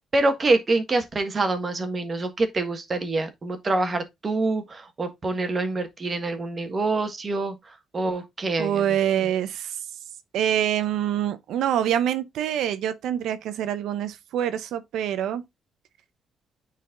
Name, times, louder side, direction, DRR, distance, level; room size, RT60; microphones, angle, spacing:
voice 1, 0.1-7.5 7.9-8.8 9.2-9.3, right 2 dB, 35° right, 1.4 m, -25 dB
voice 2, 8.6-9.8 10.3-15.4, right 10 dB, 80° right, 0.7 m, -25 dB
9.3 x 4.2 x 2.5 m
cardioid pair, 90°, 0 cm